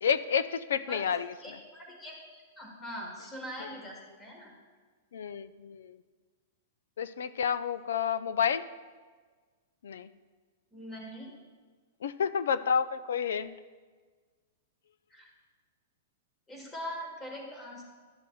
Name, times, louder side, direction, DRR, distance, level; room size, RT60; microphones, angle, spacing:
voice 1, 0.0-1.3 3.6-3.7 5.1-6.0 7.0-8.6 9.8-10.1 12.0-13.5, left 7 dB, 90° left, 15 dB, 0.4 m, -30 dB
voice 2, 1.4-4.5 10.7-11.3 15.1-15.3 16.5-17.8, equal, 10° left, 0 dB, 1.3 m, -42 dB
12.0 x 6.4 x 2.3 m, 1.4 s
supercardioid pair, 170°, 0 cm